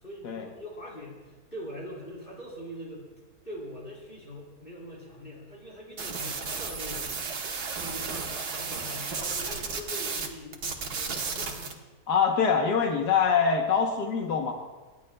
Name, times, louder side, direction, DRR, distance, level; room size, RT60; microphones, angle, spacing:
voice 1, 0.0-3.1 3.4-7.1 7.8-11.8, left 1 dB, 35° left, -3 dB, 3.9 m, -42 dB
sound 1, 6.0-10.3 10.5-11.7, right 5 dB, 75° right, 1.8 m, -33 dB
voice 2, 12.1-14.5, left 6 dB, 85° left, 2 dB, 1.6 m, -24 dB
27.0 x 12.0 x 2.3 m, 1.2 s
omnidirectional pair, 1.7 m